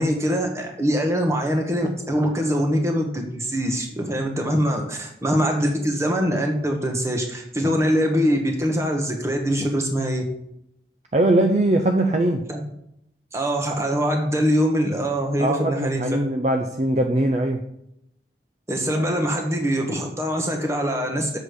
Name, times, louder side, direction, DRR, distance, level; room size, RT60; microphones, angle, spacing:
voice 1, 0.0-10.2 12.5-12.6 13.3-16.0 18.7-21.4, equal, 15° right, 3 dB, 1.3 m, -23 dB
voice 2, 11.1-12.4 15.4-17.7 18.9-19.0, right 1 dB, 40° right, 4 dB, 0.5 m, -21 dB
7.5 x 6.3 x 5.0 m, 0.76 s
head